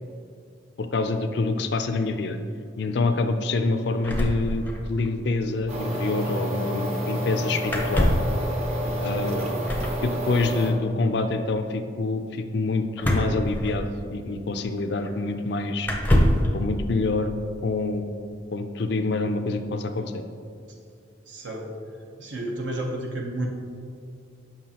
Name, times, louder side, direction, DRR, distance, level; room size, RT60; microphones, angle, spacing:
voice 1, 0.8-2.4 2.8-8.1 9.0-9.4 10.0-15.9 16.5-18.0 18.5-20.2, left 3 dB, 55° left, 7 dB, 0.4 m, -26 dB
sound 1, 4.0-5.1 5.4-5.5 5.6-5.8 7.7-8.4 9.6-10.0 13.0-14.1 15.0-15.1 15.8-16.5, equal, 10° left, 0.6 m, -24 dB
sound 2, 5.7-10.7, equal, 35° right, 0.8 m, -28 dB
voice 2, 8.8-9.6 21.2-21.7 22.2-23.5, right 1 dB, 70° right, 0 dB, 0.9 m, -32 dB
7.4 x 5.7 x 2.9 m, 2.4 s
head